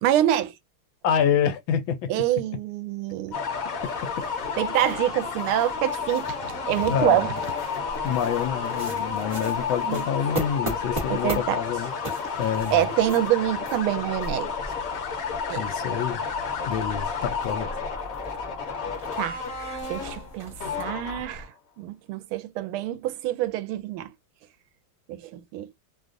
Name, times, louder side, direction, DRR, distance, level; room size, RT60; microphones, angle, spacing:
voice 1, 0.0-0.5 2.1-3.4 4.6-7.4 9.8-10.1 11.1-11.6 12.7-14.5 15.5-15.6 19.2-21.5 21.8-24.1 25.1-25.8, right 13 dB, 85° right, 1.4 m, -26 dB
voice 2, 1.0-2.1 4.0-4.3 6.9-7.3 8.0-11.9 12.4-12.9 15.5-16.2 16.7-17.7, left 8 dB, 75° left, 1.3 m, -27 dB
sound 1, 3.3-21.5, left 5 dB, 55° left, 1.0 m, -31 dB
sound 2, 3.8-21.4, right 1 dB, 30° right, 0.6 m, -40 dB
3.3 x 2.3 x 2.4 m
omnidirectional pair, 2.3 m